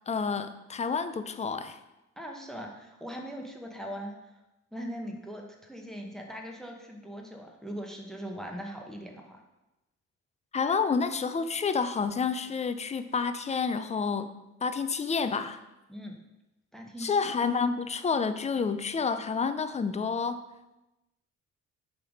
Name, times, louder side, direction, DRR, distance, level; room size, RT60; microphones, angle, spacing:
voice 1, 0.1-1.8 10.5-14.3 14.6-15.6 17.0-20.4, left 5 dB, 25° left, 11 dB, 0.4 m, -29 dB
voice 2, 2.2-4.3 4.7-9.4 15.9-16.2 16.7-17.2, equal, ahead, 1 dB, 0.9 m, -40 dB
6.7 x 3.4 x 5.1 m, 0.98 s
cardioid pair, 90°, 30 cm